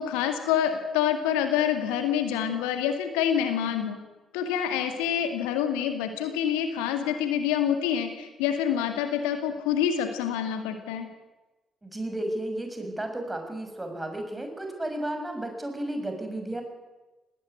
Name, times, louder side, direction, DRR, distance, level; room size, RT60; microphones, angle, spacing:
voice 1, 0.0-4.0 4.3-11.1, left 9 dB, 75° left, 7 dB, 2.0 m, -27 dB
voice 2, 11.8-16.6, right 1 dB, 15° right, 4 dB, 6.6 m, -33 dB
19.0 x 18.5 x 9.4 m, 1.1 s
figure-of-eight pair, 40°, 0 cm